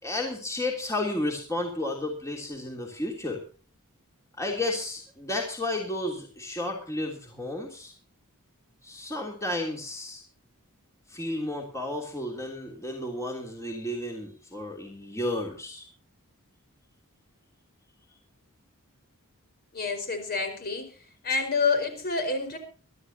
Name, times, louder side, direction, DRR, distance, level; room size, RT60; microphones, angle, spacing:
voice 1, 0.0-3.4 4.4-7.9 8.8-10.2 11.1-15.9, left 1 dB, 15° left, 0 dB, 3.1 m, -32 dB
voice 2, 19.7-20.9 21.2-22.6, left 4 dB, 45° left, 6 dB, 4.9 m, -28 dB
24.0 x 13.0 x 2.9 m, 0.39 s
head